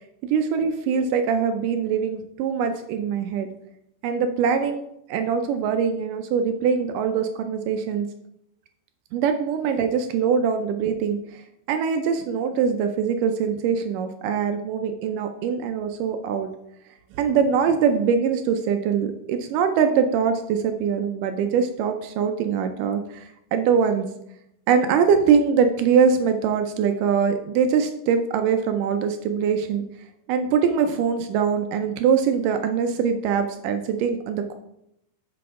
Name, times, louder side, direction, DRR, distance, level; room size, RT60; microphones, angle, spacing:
voice 1, 0.3-3.5 4.0-4.8 5.1-8.1 9.1-11.4 11.7-16.5 17.1-24.1 24.7-29.9 30.3-34.5, right 6 dB, 80° right, 6 dB, 2.2 m, -23 dB
9.7 x 6.0 x 3.6 m, 0.78 s
omnidirectional pair, 3.8 m